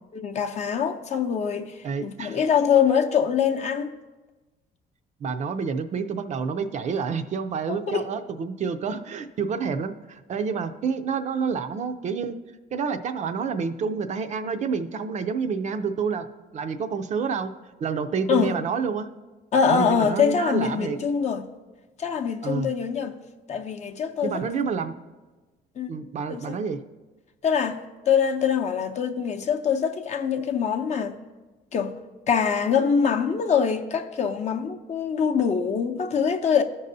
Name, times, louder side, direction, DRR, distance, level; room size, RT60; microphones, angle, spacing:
voice 1, 0.1-3.9 7.7-8.1 18.3-18.5 19.5-21.5 22.0-23.1 23.5-24.4 25.8-25.9 26.3-26.6 27.4-31.2 31.7-31.9 32.3-36.6, left 7 dB, 45° left, 0.6 m, -24 dB
voice 2, 1.8-2.4 5.2-12.4 12.7-16.3 16.5-17.5 17.8-19.1 19.7-21.0 22.4-22.7 24.2-24.9 25.9-26.8, right 5 dB, 45° right, 0.4 m, -28 dB
14.0 x 5.4 x 2.7 m
cardioid pair, 110°, 17 cm